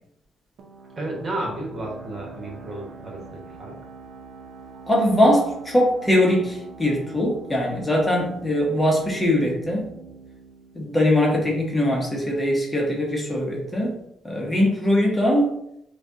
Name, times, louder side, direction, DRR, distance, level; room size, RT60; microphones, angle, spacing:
sound 1, 0.6-12.0, right 4 dB, 70° right, 0.7 m, -44 dB
voice 1, 0.9-3.8, right 1 dB, 35° right, -1 dB, 1.4 m, -32 dB
voice 2, 4.9-9.9 10.7-14.0 14.2-15.5, left 1 dB, 15° left, -1 dB, 1.0 m, -21 dB
4.9 x 2.4 x 2.8 m, 0.75 s
cardioid pair, 90°, 0 cm